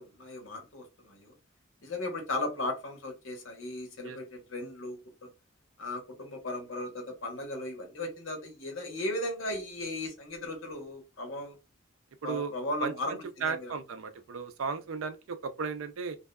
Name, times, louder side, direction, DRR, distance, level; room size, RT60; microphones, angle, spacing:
voice 1, 0.0-1.3 1.8-5.3 5.8-11.6 12.2-13.7, left 1 dB, 75° left, 0.9 m, -36 dB
voice 2, 12.2-12.5 12.8-12.9 13.4-16.2, right 5 dB, 85° right, 0.4 m, -35 dB
2.6 x 2.3 x 2.2 m
head